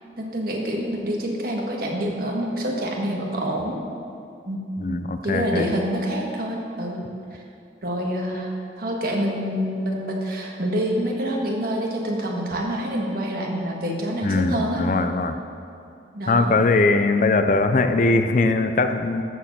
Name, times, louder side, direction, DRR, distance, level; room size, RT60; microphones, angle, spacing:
voice 1, 0.2-3.8 4.5-4.6 5.2-7.0 7.3-7.4 7.8-14.8 16.1-16.5, equal, 55° right, -1 dB, 1.6 m, -26 dB
voice 2, 4.8-5.7 14.2-15.4 16.3-19.2, left 3 dB, 45° left, 8 dB, 0.4 m, -21 dB
13.0 x 4.7 x 7.3 m, 2.6 s
head